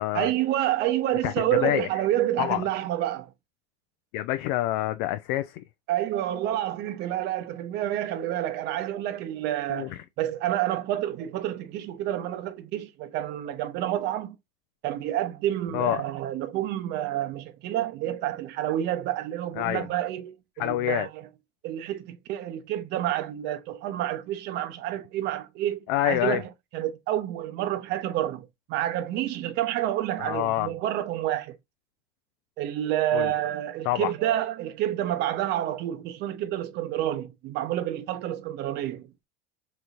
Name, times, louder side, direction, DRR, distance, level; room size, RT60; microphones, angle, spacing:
voice 1, 0.1-3.3 5.9-14.4 14.8-21.2 21.6-31.6 32.6-39.1, right 12 dB, 55° right, 0.7 m, -29 dB
voice 2, 4.1-5.5 9.7-10.0 15.7-16.0 19.6-19.9 20.6-21.1 25.9-26.4 30.2-30.7 33.1-33.3 33.9-34.1, left 15 dB, 60° left, 0.4 m, -26 dB
4.1 x 3.0 x 2.4 m
hypercardioid pair, 90°, 21 cm